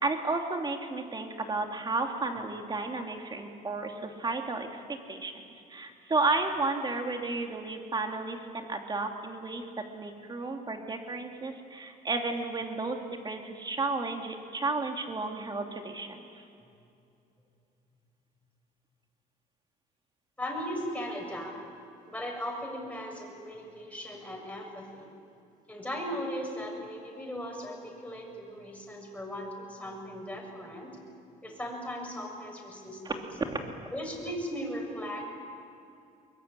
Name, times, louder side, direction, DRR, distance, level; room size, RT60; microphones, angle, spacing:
voice 1, 0.0-5.4 5.7-9.6 9.9-13.0 13.2-16.4 33.0-33.6, right 3 dB, 25° right, 3 dB, 3.0 m, -32 dB
voice 2, 20.4-21.5 22.1-25.1 25.7-30.9 31.4-33.2 33.9-35.2, equal, 10° left, 0 dB, 7.0 m, -37 dB
23.0 x 22.0 x 9.2 m, 2.6 s
cardioid pair, 110°, 17 cm